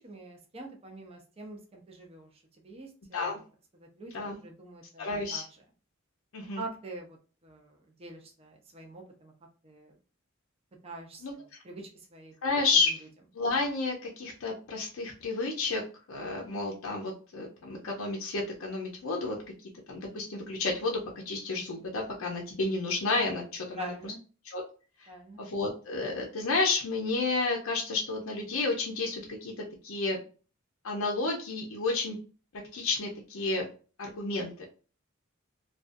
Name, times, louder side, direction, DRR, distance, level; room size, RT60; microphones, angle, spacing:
voice 1, 0.0-2.3 2.6-3.4 3.8-4.1 4.4-5.4 6.6-7.2 7.4-9.3 9.6-9.9 10.8-11.2 11.6-12.3 23.8-24.2 25.1-25.4, right 1 dB, 30° right, 1 dB, 0.5 m, -44 dB
voice 2, 5.0-5.5 6.3-6.6 11.2-11.3 12.4-13.0 13.3-15.8 16.1-19.4 19.9-21.0 21.3-24.1 24.4-24.6 25.0-25.1 25.4-29.5 29.8-30.2 30.8-32.2 32.7-33.7 34.0-34.5, left 3 dB, 70° left, 0 dB, 0.5 m, -31 dB
2.4 x 2.3 x 2.5 m, 0.37 s
head